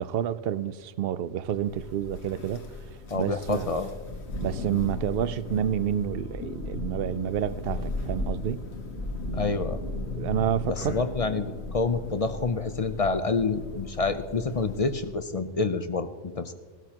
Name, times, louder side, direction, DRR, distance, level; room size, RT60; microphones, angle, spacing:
voice 1, 0.0-2.7 3.1-3.7 4.4-8.6 10.2-10.9, right 10 dB, 65° right, 0.7 m, -29 dB
Thunder, 1.5-15.2, left 2 dB, 70° left, 1.7 m, -36 dB
voice 2, 3.1-3.9 9.3-9.8 10.7-16.5, left 4 dB, 40° left, 0.6 m, -28 dB
19.0 x 13.0 x 2.9 m
omnidirectional pair, 1.2 m